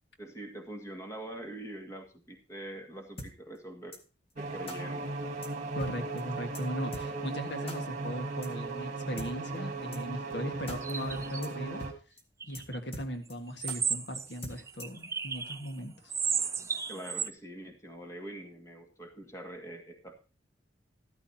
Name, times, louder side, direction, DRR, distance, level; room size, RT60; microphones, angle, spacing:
voice 1, 0.2-4.0 4.4-5.1 5.8-6.0 16.9-20.1, right 1 dB, 15° left, 4 dB, 1.9 m, -44 dB
sound 1, 3.2-3.3 3.9-4.0 4.7-4.8 5.4-5.5 5.8-5.9 6.2-6.3 6.5-6.6 6.9-7.1 7.7-7.8 8.4-8.5 9.2-9.3 9.9-10.0 10.3-10.4 10.7-10.8 11.1-11.2 11.4-11.5 11.8-11.9 12.2-12.3 12.5-12.6 12.9-13.3 13.7-13.8 14.4-15.0, left 1 dB, 30° left, 1.7 m, -42 dB
sound 2, 4.4-11.9, right 3 dB, 40° right, 1.8 m, -37 dB
voice 2, 5.7-11.8 12.5-16.1, equal, 65° left, 6 dB, 1.7 m, -38 dB
sound 3, 10.7-11.4 12.4-12.8 13.6-15.7 16.1-17.3, right 6 dB, 15° right, 0.5 m, -34 dB
13.5 x 13.0 x 2.8 m, 0.33 s
head